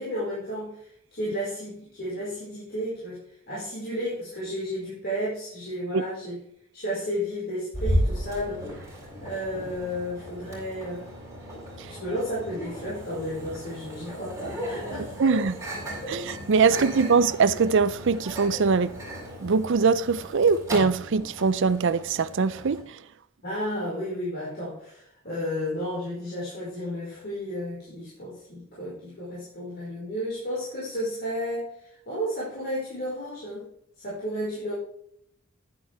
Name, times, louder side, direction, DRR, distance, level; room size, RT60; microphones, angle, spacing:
voice 1, 0.0-3.2 3.5-6.4 6.7-8.8 9.2-11.1 11.9-15.4 16.0-16.2 16.7-16.9 23.4-33.7 34.0-34.7, equal, 45° left, 5.1 m, -32 dB
Microwave oven, 7.7-22.8, equal, 15° right, 5.3 m, -35 dB
voice 2, 15.2-15.6 16.1-19.0 19.4-23.0, right 5 dB, 60° right, 0.5 m, -22 dB
11.0 x 9.8 x 3.5 m
head